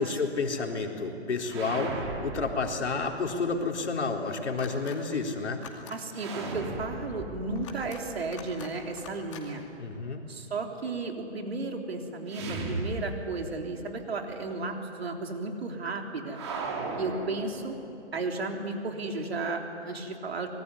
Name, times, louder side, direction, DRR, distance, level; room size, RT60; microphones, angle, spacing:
voice 1, 0.0-5.6 9.8-10.2, left 4 dB, 70° left, 2 dB, 3.9 m, -30 dB
sound 1, 1.5-3.4 6.1-9.1 12.3-13.7 14.0-14.1 16.3-18.1, right 3 dB, 25° right, 2.4 m, -37 dB
sound 2, 4.6-5.0 5.5-6.0 7.5-8.0 8.3-8.7 9.0-9.4, left 7 dB, 25° left, 2.5 m, -45 dB
voice 2, 5.9-9.6 10.3-16.4 17.0-17.8 18.1-20.5, right 3 dB, 60° right, 3 dB, 3.7 m, -34 dB
26.0 x 21.5 x 9.8 m, 2.9 s
hypercardioid pair, 175°, 35 cm